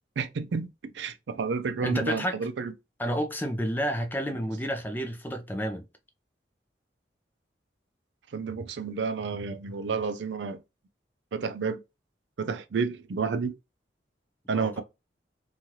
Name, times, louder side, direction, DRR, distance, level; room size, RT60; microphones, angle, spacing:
voice 1, 0.2-2.7 8.3-10.6 11.3-11.8 12.4-13.5 14.5-14.8, right 5 dB, 80° right, 0.4 m, -30 dB
voice 2, 1.8-2.4 3.0-5.9 14.6-14.8, equal, 10° left, 0.4 m, -30 dB
3.1 x 2.3 x 2.7 m
head